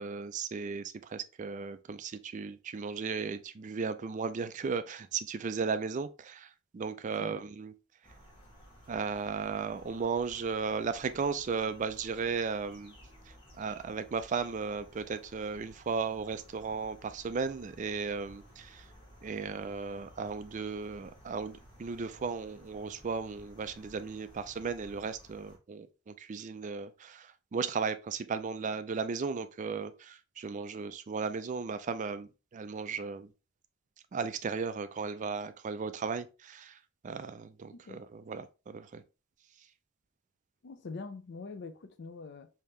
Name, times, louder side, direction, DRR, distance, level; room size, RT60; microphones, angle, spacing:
voice 1, 0.0-7.7 8.9-12.9 13.6-18.9 19.2-33.3 34.1-36.8 37.0-39.0, right 5 dB, 35° right, 0.3 m, -35 dB
sound 1, 8.0-25.6, equal, 25° left, 1.4 m, -56 dB
voice 2, 37.7-38.0 40.6-42.5, left 4 dB, 55° left, 0.5 m, -44 dB
3.5 x 2.8 x 3.2 m
head